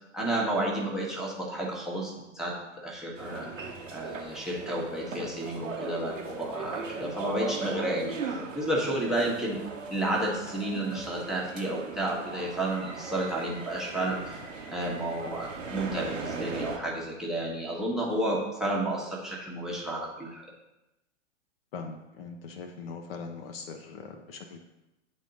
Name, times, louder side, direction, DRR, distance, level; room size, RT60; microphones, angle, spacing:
voice 1, 0.0-8.1 8.5-9.6 9.9-14.4 14.7-20.4, right 1 dB, ahead, -5 dB, 1.1 m, -31 dB
sound 1, 3.2-16.8, right 4 dB, 85° right, 1.0 m, -38 dB
voice 2, 21.7-24.6, left 5 dB, 50° left, 4 dB, 0.7 m, -41 dB
9.1 x 3.7 x 3.9 m, 0.97 s
hypercardioid pair, 110°, 38 cm